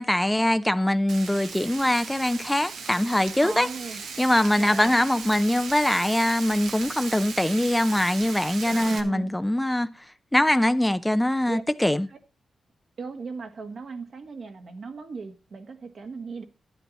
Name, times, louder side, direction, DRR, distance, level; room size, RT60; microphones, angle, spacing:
voice 1, 0.0-3.7 4.2-9.9 10.3-12.1, left 1 dB, 10° left, 0.6 m, -23 dB
Frying (food), 1.1-9.0, right 5 dB, 85° right, 1.5 m, -37 dB
voice 2, 3.4-4.0 4.6-5.0 8.9-9.4 11.5-11.6 12.1-12.2 13.0-16.4, right 4 dB, 60° right, 1.9 m, -37 dB
11.5 x 9.3 x 4.2 m
cardioid pair, 85°, 0 cm